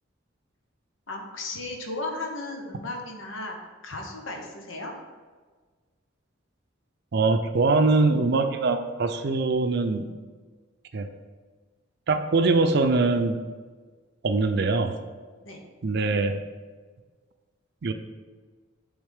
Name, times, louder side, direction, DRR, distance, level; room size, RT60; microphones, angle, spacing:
voice 1, 1.1-3.5 3.8-4.9 15.4-15.6, left 2 dB, 85° left, 2 dB, 1.1 m, -35 dB
voice 2, 7.1-10.1 10.9-11.1 12.1-13.4 14.2-15.0 15.8-16.4 17.8-17.9, right 3 dB, 55° right, 8 dB, 0.5 m, -22 dB
9.7 x 3.6 x 3.5 m, 1.4 s
head